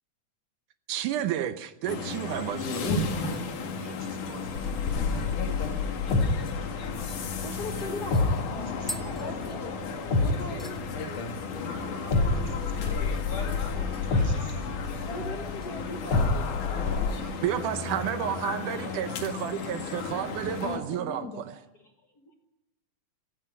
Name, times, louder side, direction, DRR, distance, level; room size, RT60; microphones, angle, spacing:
voice 1, 0.9-3.0 17.4-21.5, right 11 dB, 85° right, 11 dB, 2.4 m, -31 dB
sound 1, 1.9-20.8, left 4 dB, 80° left, 3.5 m, -34 dB
voice 2, 3.1-3.4 3.8-5.9 8.7-9.5 11.3-14.8 16.7-17.9, right 1 dB, 35° right, 5 dB, 4.4 m, -46 dB
sound 2, 4.5-11.6 12.1-17.1, left 3 dB, 60° left, 2.8 m, -29 dB
sound 3, 6.5-6.6 7.1-10.1 10.3-10.8 11.2-11.6 11.8-11.9 14.0-14.7 15.0-15.7 16.1-16.4 17.0-17.9 18.2-18.3, equal, ahead, 1.2 m, -47 dB
voice 3, 7.4-9.8 10.2-10.9 15.0-16.4 16.8-17.0 17.3-17.4 18.4-19.2 20.4-21.5 21.8-22.3, left 2 dB, 40° left, 3 dB, 1.5 m, -41 dB
17.5 x 15.0 x 10.0 m, 0.98 s
omnidirectional pair, 3.5 m